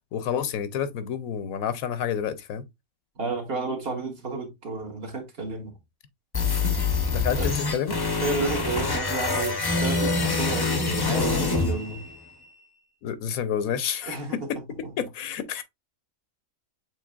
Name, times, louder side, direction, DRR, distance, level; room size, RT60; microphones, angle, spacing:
voice 1, 0.1-2.6 7.1-8.0 13.0-14.6 15.0-15.6, left 8 dB, 90° left, 1.1 m, -29 dB
voice 2, 3.2-5.7 6.6-6.7 7.4-7.5 8.2-12.0 14.1-14.4, right 4 dB, 50° right, 1.3 m, -31 dB
sound 1, 6.3-12.4, left 4 dB, 25° left, 0.5 m, -25 dB
7.1 x 3.1 x 2.3 m
omnidirectional pair, 1.4 m